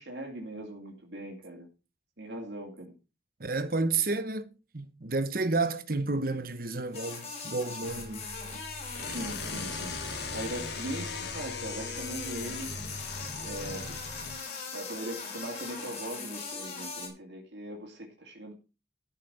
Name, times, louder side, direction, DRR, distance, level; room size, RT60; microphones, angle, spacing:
voice 1, 0.0-1.7 2.2-2.9 9.0-12.7 13.3-14.0 14.7-18.5, right 1 dB, 80° right, 2.8 m, -40 dB
voice 2, 3.4-8.3, right 3 dB, 55° right, 1.1 m, -31 dB
sound 1, 6.9-17.1, left 4 dB, 35° left, 4.5 m, -41 dB
sound 2, 7.8-14.4, left 4 dB, 70° left, 1.9 m, -39 dB
13.5 x 5.9 x 5.6 m
head